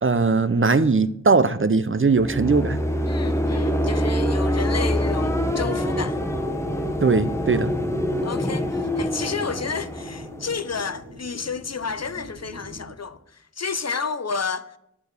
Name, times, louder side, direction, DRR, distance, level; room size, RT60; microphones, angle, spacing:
voice 1, 0.0-2.8 7.0-7.7, right 4 dB, 45° right, 0.6 m, -20 dB
sound 1, 1.9-11.0, equal, 10° left, 1.0 m, -25 dB
sound 2, 2.6-12.9, right 1 dB, 80° right, 1.6 m, -43 dB
voice 2, 3.1-6.2 8.2-14.8, left 5 dB, 60° left, 0.6 m, -31 dB
9.7 x 7.1 x 6.6 m
wide cardioid pair, 40°, 29 cm